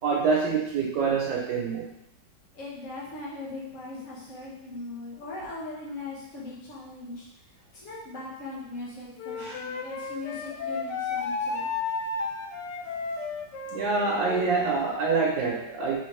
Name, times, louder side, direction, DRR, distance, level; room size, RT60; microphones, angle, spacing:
voice 1, 0.0-1.9 9.4-9.6 13.7-16.0, right 4 dB, 75° right, -4 dB, 1.4 m, -26 dB
voice 2, 2.5-11.7, left 2 dB, 45° left, -7 dB, 1.5 m, -40 dB
Wind instrument woodwind instrument, 9.2-14.5, left 4 dB, 75° left, 1.2 m, -33 dB
4.2 x 3.4 x 3.1 m, 0.79 s
omnidirectional pair, 2.0 m